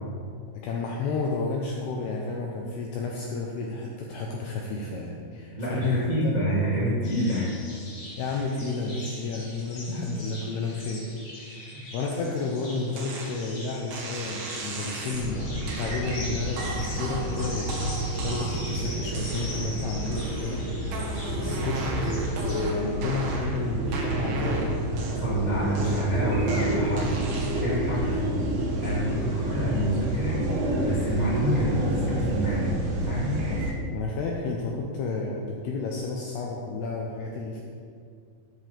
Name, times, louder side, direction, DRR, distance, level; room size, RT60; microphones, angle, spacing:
voice 1, 0.6-6.3 8.2-11.1 11.4-24.7 28.0-28.2 29.1-29.3 33.4-33.6 33.9-37.6, left 3 dB, 80° left, -1 dB, 2.3 m, -32 dB
voice 2, 5.6-7.5 9.9-10.0 11.7-11.8 25.1-28.1 28.8-32.7 33.0-33.4, equal, 30° right, -8 dB, 0.7 m, -27 dB
sound 1, 7.0-22.6, left 1 dB, 40° left, 3.1 m, -43 dB
sound 2, 13.0-13.3 13.9-15.3 15.7-16.0 16.6-18.7 19.1-19.7 20.1-20.5 20.9-23.6 23.9-25.4 25.7-27.8, right 2 dB, 60° right, 2.2 m, -36 dB
sound 3, 15.1-33.7, right 1 dB, 80° right, 1.7 m, -29 dB
13.0 x 9.1 x 3.5 m, 2.2 s
omnidirectional pair, 5.6 m